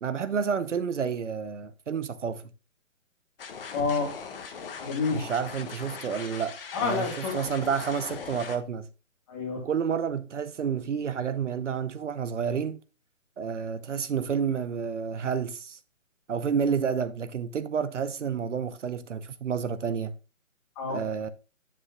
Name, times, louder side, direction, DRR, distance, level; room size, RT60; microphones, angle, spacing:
voice 1, 0.0-2.5 5.1-8.9 9.6-12.8 13.4-15.8 16.3-20.1 20.9-21.3, right 7 dB, 60° right, 0.9 m, -30 dB
sound 1, 3.4-8.6, left 5 dB, 45° left, 1.5 m, -40 dB
voice 2, 3.7-4.1 4.8-5.2 6.7-7.4 9.3-9.7 20.8-21.0, left 4 dB, 25° left, 2.5 m, -28 dB
10.0 x 6.8 x 2.3 m
hypercardioid pair, 160°, 40 cm